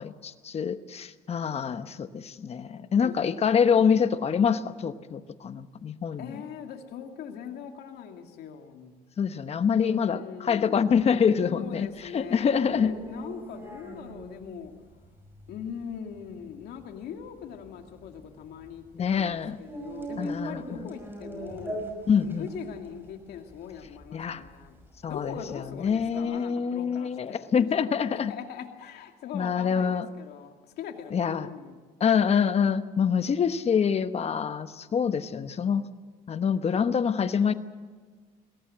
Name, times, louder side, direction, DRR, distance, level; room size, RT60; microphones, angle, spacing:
voice 1, 0.0-6.4 9.2-12.9 18.9-19.6 20.2-20.9 22.1-22.5 24.1-24.4 25.0-28.3 29.3-30.1 31.1-31.5 32.0-35.9 36.3-37.5, left 7 dB, 40° left, 11 dB, 1.1 m, -26 dB
voice 2, 2.8-3.2 3.7-3.9 6.2-9.0 9.7-10.8 11.5-14.7 15.5-21.8 22.2-24.8 25.0-31.8, left 8 dB, 75° left, 5 dB, 2.4 m, -41 dB
sound 1, 11.9-26.2, right 1 dB, 10° right, 5.8 m, -42 dB
21.5 x 17.5 x 7.8 m, 1.5 s
cardioid pair, 110°, 17 cm